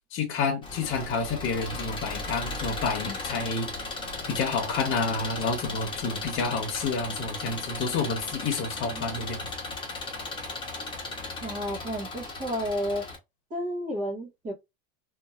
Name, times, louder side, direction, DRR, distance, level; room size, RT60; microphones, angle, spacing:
voice 1, 0.1-3.7 4.3-9.5, left 4 dB, 40° left, 1.1 m, -29 dB
Engine, 0.6-13.2, left 3 dB, 15° left, 1.1 m, -36 dB
voice 2, 8.9-9.3 11.4-13.1 13.5-14.5, equal, 25° right, 1.1 m, -32 dB
2.8 x 2.7 x 2.4 m
supercardioid pair, 140°, 32 cm